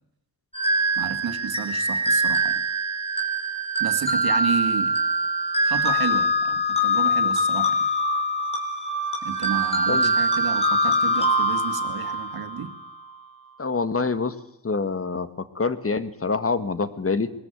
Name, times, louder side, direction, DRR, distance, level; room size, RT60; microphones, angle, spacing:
sound 1, 0.5-12.9, equal, 15° left, 3.6 m, -23 dB
voice 1, 1.0-2.6 3.8-4.9 5.6-7.9 9.2-12.7, right 7 dB, 85° right, 8 dB, 2.0 m, -31 dB
voice 2, 13.6-14.3 14.6-15.3 15.5-17.3, left 4 dB, 40° left, 13 dB, 1.6 m, -25 dB
21.0 x 14.0 x 9.2 m, 0.82 s
cardioid pair, 65°, 36 cm